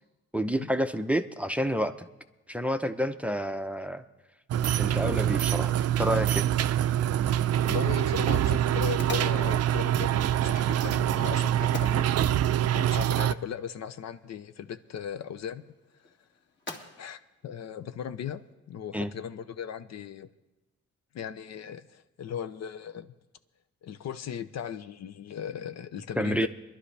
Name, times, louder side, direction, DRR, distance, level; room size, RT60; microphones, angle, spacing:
voice 1, 0.3-2.1 2.5-4.0 4.8-6.5 18.9-19.1 26.2-26.5, equal, 5° right, 9 dB, 0.6 m, -29 dB
sound 1, 4.5-13.3, right 11 dB, 55° right, 0.5 m, -25 dB
voice 2, 7.6-12.1 12.7-15.6 15.9-16.1 17.0-20.3 21.1-23.1 23.8-26.5, left 8 dB, 60° left, 12 dB, 0.7 m, -38 dB
sound 2, 13.1-18.5, left 2 dB, 40° left, 2.2 m, -48 dB
23.0 x 11.5 x 3.3 m, 1.1 s
cardioid pair, 90°, 30 cm